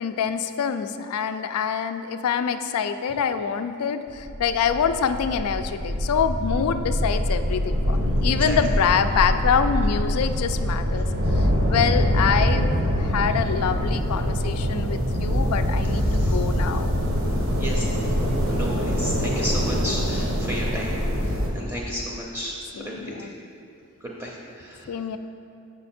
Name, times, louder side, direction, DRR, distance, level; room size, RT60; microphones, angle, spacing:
voice 1, 0.0-11.1 11.3-16.9 22.7-23.3 24.9-25.2, left 7 dB, 85° left, 9 dB, 0.4 m, -25 dB
sound 1, 4.1-21.5, equal, 70° right, 1.1 m, -24 dB
voice 2, 15.9-16.4 17.6-18.0 18.5-23.3 24.0-24.9, equal, 15° right, -3 dB, 0.6 m, -33 dB
7.2 x 5.1 x 4.3 m, 2.6 s
head